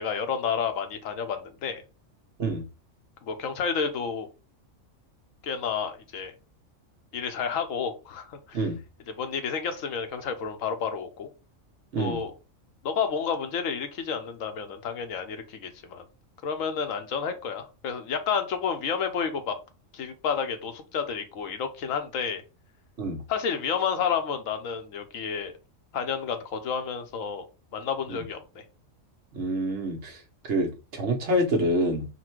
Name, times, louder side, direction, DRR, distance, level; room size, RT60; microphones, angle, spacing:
voice 1, 0.0-1.8 3.2-4.3 5.4-6.3 7.1-8.6 9.2-11.3 12.0-12.3 12.8-16.0 16.4-19.5 19.9-22.4 23.3-25.5 25.9-27.4 27.7-28.6, left 6 dB, 80° left, 1.1 m, -30 dB
voice 2, 29.3-30.2 30.5-32.1, right 1 dB, 60° right, 1.2 m, -27 dB
4.2 x 2.2 x 4.4 m
omnidirectional pair, 1.4 m